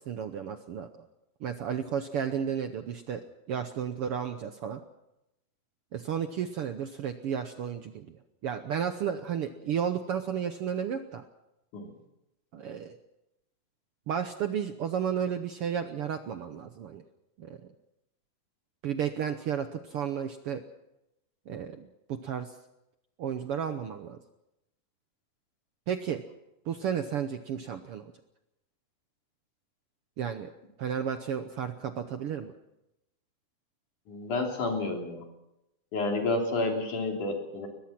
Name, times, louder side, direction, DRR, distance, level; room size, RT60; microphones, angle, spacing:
voice 1, 0.1-1.1 1.4-4.8 5.9-8.2 8.4-11.2 12.5-13.0 14.1-17.0 17.4-17.6 18.8-20.6 21.5-22.5 23.2-24.2 25.9-26.2 26.7-28.1 30.2-30.5 30.8-32.5, right 8 dB, 70° right, 8 dB, 1.4 m, -33 dB
voice 2, 34.1-35.2 35.9-37.7, left 2 dB, 75° left, 1 dB, 4.8 m, -30 dB
22.0 x 20.5 x 6.0 m, 0.89 s
omnidirectional pair, 3.6 m